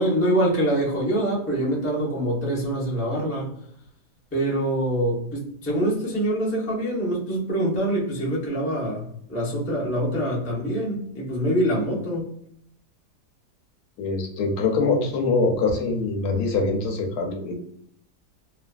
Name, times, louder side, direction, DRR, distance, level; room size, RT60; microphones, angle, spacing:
voice 1, 0.0-3.5 4.3-12.3, right 1 dB, 20° left, -5 dB, 0.4 m, -25 dB
voice 2, 14.0-17.5, left 3 dB, 75° left, 3 dB, 1.1 m, -23 dB
2.7 x 2.4 x 2.2 m, 0.70 s
omnidirectional pair, 1.8 m